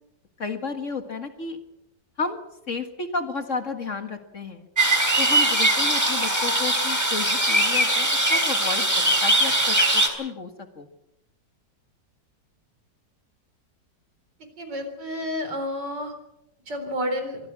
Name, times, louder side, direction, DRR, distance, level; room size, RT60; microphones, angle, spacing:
voice 1, 0.4-1.6 2.2-2.4 2.7-4.7 5.2-10.5 10.8-10.9, left 4 dB, 45° left, 7 dB, 2.0 m, -32 dB
sound 1, 4.8-10.1, right 1 dB, 10° right, 3.3 m, -21 dB
voice 2, 14.6-16.1 16.7-17.4, equal, 75° right, 7 dB, 4.5 m, -30 dB
24.0 x 16.0 x 7.4 m, 0.88 s
omnidirectional pair, 1.9 m